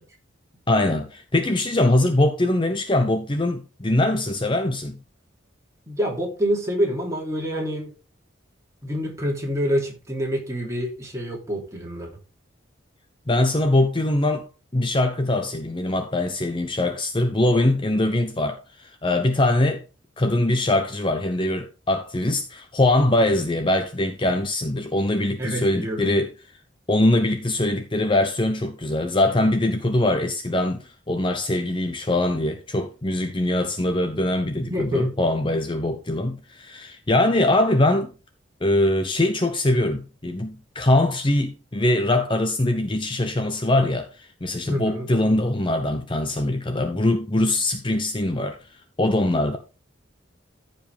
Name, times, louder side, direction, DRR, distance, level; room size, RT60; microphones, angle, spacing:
voice 1, 0.7-5.0 13.3-14.5 14.7-19.8 20.2-26.3 26.9-38.1 38.6-48.6 49.0-49.6, left 1 dB, 25° left, 0.7 m, -22 dB
voice 2, 5.9-7.9 8.8-12.1 25.4-26.2 34.6-35.1 44.7-45.1, equal, 15° right, 2.8 m, -27 dB
14.5 x 5.2 x 3.5 m
head